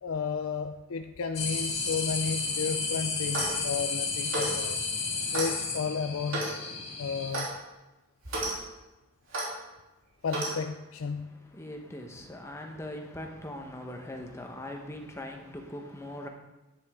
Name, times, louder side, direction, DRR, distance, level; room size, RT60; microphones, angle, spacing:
voice 1, 0.0-4.8 5.3-6.5 7.0-7.6 10.2-11.3, left 5 dB, 85° left, 7 dB, 0.5 m, -33 dB
sound 1, 1.3-7.3, left 4 dB, 30° left, 2.2 m, -32 dB
Clock, 3.2-3.6 4.3-4.6 5.3-5.5 6.3-6.6 7.3-7.5 8.2-8.5 9.3-9.5 10.3-10.5, right 2 dB, 75° right, 3.0 m, -32 dB
voice 2, 11.1-16.3, left 1 dB, 15° left, 2 dB, 1.0 m, -41 dB
10.5 x 9.0 x 3.6 m, 1.0 s
head